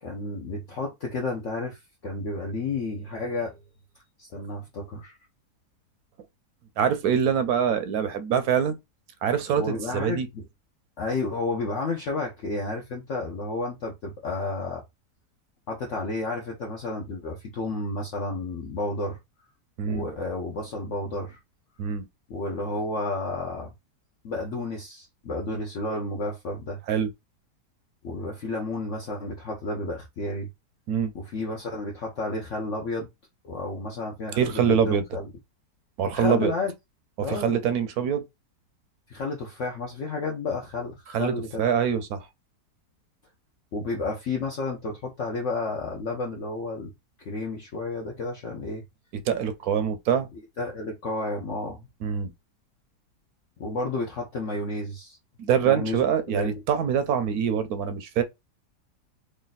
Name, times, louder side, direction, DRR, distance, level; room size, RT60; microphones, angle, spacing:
voice 1, 0.0-3.6 4.2-5.2 9.6-10.4 11.0-14.8 15.7-19.2 19.8-21.4 22.3-23.7 24.2-26.8 28.0-30.5 31.1-33.1 33.4-35.3 36.0-36.7 37.2-37.6 39.1-41.7 43.7-46.9 47.2-48.8 50.3-51.9 53.6-55.2 55.6-56.5, left 2 dB, 55° left, 0.9 m, -31 dB
voice 2, 6.8-8.8 9.2-10.3 19.8-20.1 21.8-22.1 26.9-27.1 30.9-31.1 34.4-35.0 36.0-36.5 37.3-38.2 41.1-41.3 41.6-42.3 49.3-50.3 52.0-52.3 55.4-58.2, right 8 dB, 70° right, 1.0 m, -24 dB
3.2 x 2.6 x 4.0 m
omnidirectional pair, 1.8 m